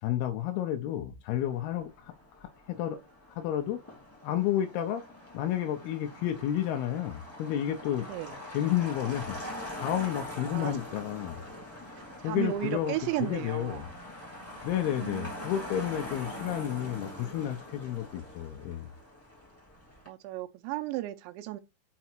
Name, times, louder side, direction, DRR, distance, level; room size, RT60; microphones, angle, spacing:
voice 1, 0.0-3.0 3.3-3.8 4.2-5.0 5.3-8.1 8.5-9.4 9.8-11.4 12.2-12.9 13.2-13.9 14.6-18.9, left 11 dB, 80° left, 2.4 m, -31 dB
Motor vehicle (road), 1.3-20.1, left 1 dB, 5° left, 1.5 m, -44 dB
voice 2, 8.0-8.4 10.5-10.8 11.9-13.9 14.8-15.5 20.1-21.6, right 16 dB, 85° right, 2.9 m, -35 dB
5.8 x 5.3 x 4.4 m
omnidirectional pair, 5.2 m